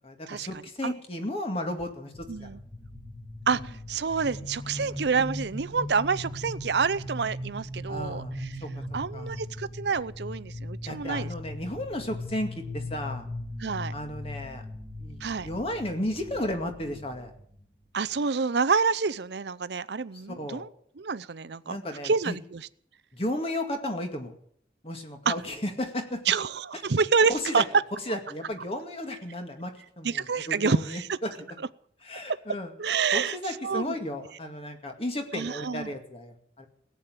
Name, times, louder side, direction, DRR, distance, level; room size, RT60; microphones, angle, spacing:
voice 1, 0.0-2.1 2.4-2.5 3.5-3.7 4.8-5.0 7.9-9.4 10.9-13.3 13.9-14.6 15.0-17.3 20.1-20.7 21.6-22.4 23.1-24.3 24.8-26.2 27.3-27.6 28.1-31.3 32.0-32.7 33.1-36.7, left 1 dB, 35° left, 5 dB, 2.2 m, -34 dB
sound 1, 2.1-18.1, left 1 dB, 15° left, 2.0 m, -39 dB
voice 2, 2.3-2.6 3.5-8.5 8.9-11.3 13.6-13.9 15.2-15.5 17.9-20.7 21.0-21.8 22.0-22.6 25.3-25.4 26.3-27.6 30.0-31.2 32.8-33.4 33.6-34.0 35.3-35.9, right 5 dB, 75° right, 16 dB, 0.6 m, -28 dB
17.0 x 8.5 x 9.1 m, 0.65 s
head